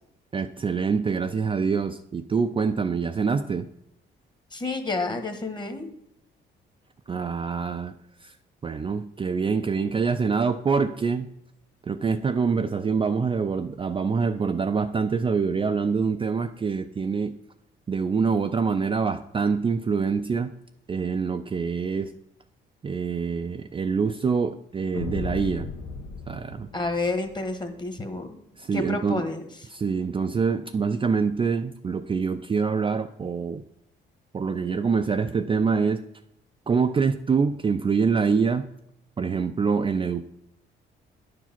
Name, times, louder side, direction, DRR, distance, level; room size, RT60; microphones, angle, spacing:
voice 1, 0.3-3.7 7.1-7.9 8.2-8.3 8.6-11.3 11.9-17.3 17.9-20.5 20.9-22.1 22.8-25.7 26.3-26.7 28.6-29.2 29.7-33.6 34.3-36.0 36.7-38.7 39.2-40.2, right 5 dB, 25° right, 7 dB, 0.4 m, -25 dB
voice 2, 4.5-5.9 26.7-28.4 28.7-29.4, left 2 dB, 20° left, 7 dB, 1.3 m, -29 dB
sound 1, 24.9-27.6, left 4 dB, 80° left, 1.2 m, -36 dB
9.8 x 4.8 x 5.9 m, 0.76 s
cardioid pair, 90°, 20 cm